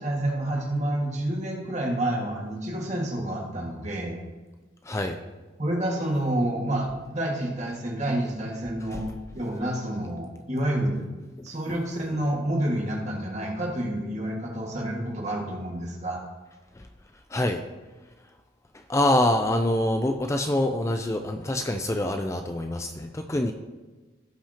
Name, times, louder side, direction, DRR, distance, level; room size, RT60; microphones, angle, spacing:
voice 1, 0.0-4.2 5.6-9.1 9.3-11.0 11.4-16.2, right 1 dB, 40° right, -1 dB, 1.9 m, -29 dB
voice 2, 4.8-5.2 8.9-9.0 11.4-11.5 16.8-16.9 17.3-17.6 18.9-23.5, left 1 dB, 15° left, 5 dB, 0.4 m, -25 dB
16.5 x 5.7 x 2.9 m, 1.2 s
head